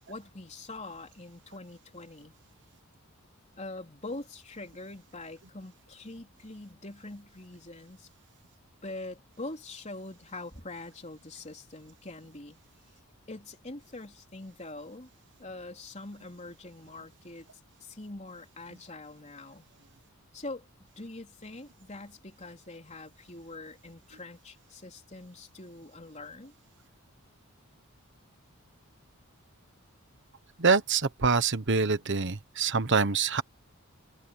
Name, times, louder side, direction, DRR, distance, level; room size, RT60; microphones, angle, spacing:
voice 1, 0.1-2.4 3.6-8.1 8.8-12.6 13.3-15.1 15.4-17.5 17.8-19.7 20.3-20.7 21.0-26.5, left 2 dB, 30° left, 3.7 m, -44 dB
voice 2, 30.6-33.4, right 4 dB, 55° right, 1.2 m, -25 dB
open air
head